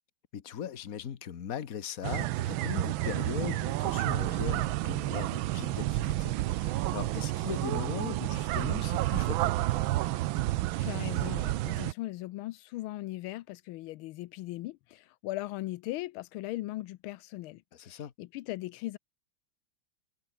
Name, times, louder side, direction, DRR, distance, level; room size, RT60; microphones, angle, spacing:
voice 1, 0.3-9.5 17.7-18.1, left 8 dB, 45° left, 1.6 m, -39 dB
sound 1, 2.0-11.9, right 16 dB, 75° right, 1.4 m, -30 dB
voice 2, 10.8-19.0, left 17 dB, 85° left, 1.5 m, -39 dB
omnidirectional pair, 2.3 m